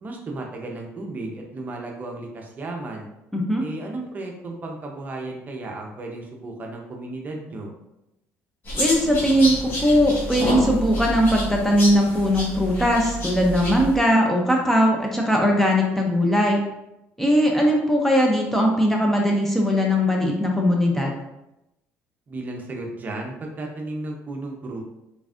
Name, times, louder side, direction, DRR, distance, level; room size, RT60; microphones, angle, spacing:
voice 1, 0.0-3.1 3.6-7.7 22.3-24.8, right 2 dB, 30° right, 1 dB, 0.7 m, -34 dB
voice 2, 3.3-3.6 8.7-16.6 17.2-21.2, equal, 5° left, -1 dB, 0.6 m, -20 dB
sound 1, 8.7-14.0, equal, 40° left, 1.4 m, -28 dB
3.9 x 3.5 x 2.4 m, 0.90 s
cardioid pair, 110°, 5 cm